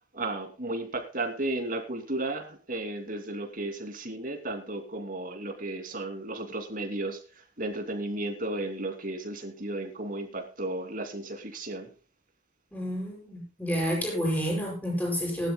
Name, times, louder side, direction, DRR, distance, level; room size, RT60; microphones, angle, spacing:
voice 1, 0.1-11.9, right 2 dB, 50° right, 4 dB, 2.8 m, -34 dB
voice 2, 12.7-15.5, equal, 10° left, -3 dB, 7.7 m, -29 dB
20.5 x 12.0 x 2.3 m, 0.34 s
head